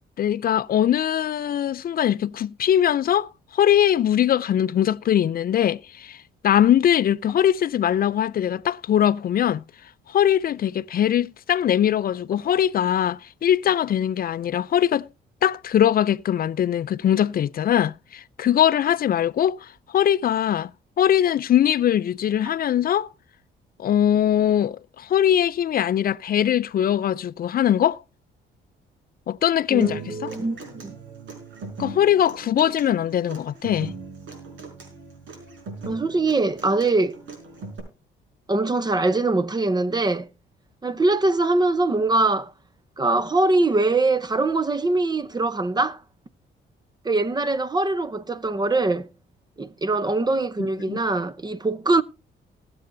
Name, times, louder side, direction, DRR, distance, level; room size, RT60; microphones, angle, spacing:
voice 1, 0.2-6.2 6.4-9.6 10.1-15.1 15.4-20.7 21.0-23.1 23.8-28.0 29.3-30.3 31.8-33.9 50.9-51.0, left 10 dB, 50° left, 0.4 m, -21 dB
voice 2, 29.7-30.9 35.9-37.2 38.5-40.3 40.8-42.5 43.0-46.0 47.0-49.1 49.6-52.0, right 2 dB, 20° right, 0.7 m, -22 dB
Human voice / Acoustic guitar, 29.8-37.8, right 3 dB, 75° right, 5.1 m, -40 dB
19.5 x 7.7 x 2.6 m
cardioid pair, 90°, 20 cm